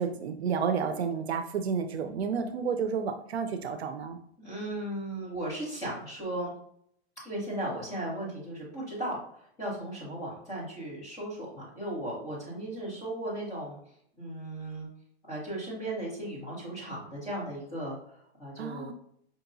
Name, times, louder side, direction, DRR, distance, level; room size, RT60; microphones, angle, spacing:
voice 1, 0.0-4.2 18.6-18.9, right 6 dB, 70° right, 8 dB, 0.6 m, -31 dB
voice 2, 4.4-6.5 7.2-13.8 14.2-14.9 15.3-18.9, right 1 dB, 10° left, -8 dB, 1.1 m, -36 dB
5.1 x 2.8 x 2.6 m, 0.67 s
hypercardioid pair, 180°, 33 cm